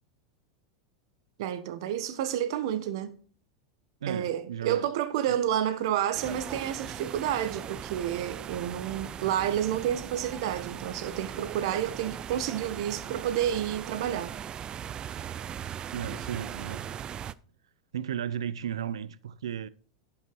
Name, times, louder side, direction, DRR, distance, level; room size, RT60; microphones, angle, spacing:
voice 1, 1.4-3.2 4.1-14.3, right 10 dB, 70° right, 1.2 m, -30 dB
voice 2, 4.0-4.9 5.3-5.4 15.9-16.9 17.9-19.7, right 9 dB, 85° right, 0.5 m, -34 dB
sound 1, 6.1-17.3, right 9 dB, 30° right, 0.4 m, -39 dB
11.5 x 5.5 x 4.6 m
hypercardioid pair, 105°, 3 cm